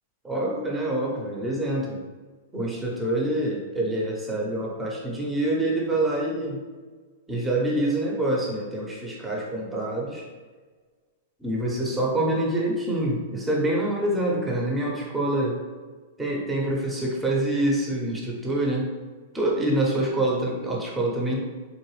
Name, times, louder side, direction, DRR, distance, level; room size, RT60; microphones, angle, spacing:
voice 1, 0.2-2.0 2.5-6.6 7.3-10.2 11.4-15.6 16.2-18.9 19.3-21.4, right 1 dB, 10° right, -3 dB, 0.8 m, -26 dB
3.7 x 2.5 x 3.2 m, 1.4 s
hypercardioid pair, 105°, 0 cm